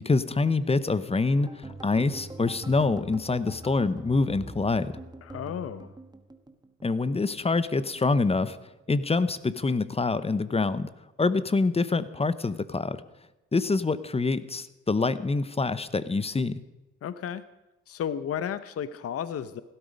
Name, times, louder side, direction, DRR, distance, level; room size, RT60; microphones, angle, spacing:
voice 1, 0.0-1.5 1.8-4.9 6.8-8.6 8.9-10.9 11.2-13.0 13.5-16.6, left 3 dB, 20° left, 15 dB, 0.9 m, -25 dB
sound 1, 1.4-7.5 7.8-8.9 9.2-9.5 9.8-10.0, right 2 dB, 15° right, 1.3 m, -44 dB
voice 2, 5.2-5.9 17.0-17.4 17.9-19.6, left 8 dB, 50° left, 13 dB, 0.8 m, -33 dB
16.5 x 12.5 x 5.2 m, 1.0 s
cardioid pair, 90°, 30 cm